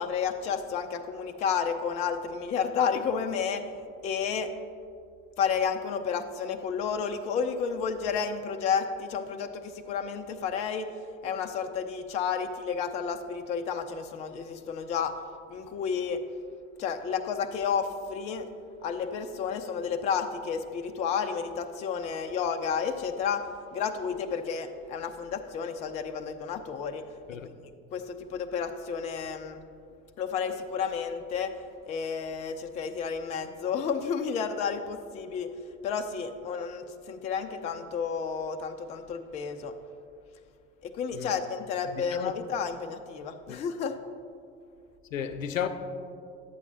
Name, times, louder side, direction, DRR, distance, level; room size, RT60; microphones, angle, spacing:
voice 1, 0.0-3.7 4.0-4.5 5.4-10.9 11.2-15.1 15.5-16.2 16.8-18.5 18.8-27.4 27.9-29.6 30.2-35.5 35.8-39.7 40.8-44.0, left 6 dB, 20° left, 0.3 m, -31 dB
voice 2, 41.9-42.3 43.5-43.6 45.1-45.7, left 8 dB, 80° left, 0.6 m, -33 dB
11.0 x 8.1 x 2.8 m
figure-of-eight pair, 70°, 39 cm